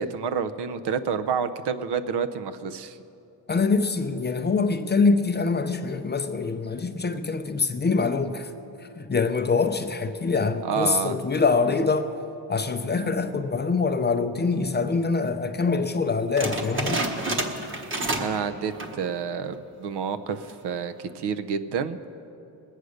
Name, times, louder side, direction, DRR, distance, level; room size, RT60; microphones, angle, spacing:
voice 1, 0.0-3.0 10.6-11.2 18.2-22.0, right 6 dB, 70° right, 12 dB, 0.7 m, -29 dB
voice 2, 3.5-8.5 8.8-12.1 12.5-17.1, left 4 dB, 25° left, 7 dB, 0.4 m, -24 dB
sound 1, 16.4-18.4 18.7-19.1 19.5-19.6 20.3-20.7, right 2 dB, 30° right, 1.0 m, -29 dB
20.5 x 8.2 x 6.4 m, 2.8 s
wide cardioid pair, 170°, 41 cm